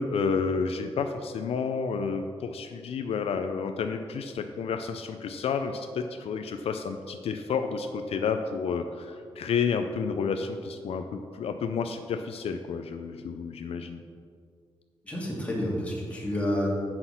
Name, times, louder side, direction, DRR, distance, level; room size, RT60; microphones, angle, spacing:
voice 1, 0.0-14.0, left 5 dB, 75° left, 7 dB, 0.4 m, -30 dB
voice 2, 15.0-16.7, left 1 dB, 15° left, -4 dB, 2.1 m, -29 dB
7.8 x 5.9 x 5.7 m, 2.2 s
wide cardioid pair, 120°, 10 cm